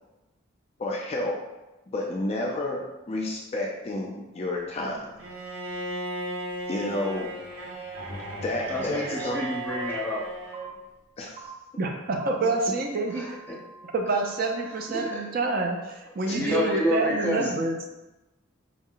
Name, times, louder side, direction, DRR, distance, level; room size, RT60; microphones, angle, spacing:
voice 1, 0.8-1.4 1.9-5.1 6.7-7.3 8.1-9.4 11.2-11.5 16.3-16.4, left 1 dB, 30° left, -1 dB, 0.3 m, -31 dB
Bowed string instrument, 5.2-10.7, right 1 dB, 90° right, 0.9 m, -35 dB
voice 2, 8.7-10.2 13.1-13.6 14.7-15.2 16.3-17.5, left 1 dB, 10° left, -4 dB, 0.8 m, -29 dB
sound 1, 9.7-9.8 10.5-10.6 11.4-11.5 12.2-12.3 12.9-15.1, right 3 dB, 70° right, 1.3 m, -48 dB
voice 3, 11.8-13.4 13.9-17.8, right 3 dB, 45° right, 3 dB, 0.4 m, -27 dB
4.5 x 2.1 x 3.7 m, 1.0 s
head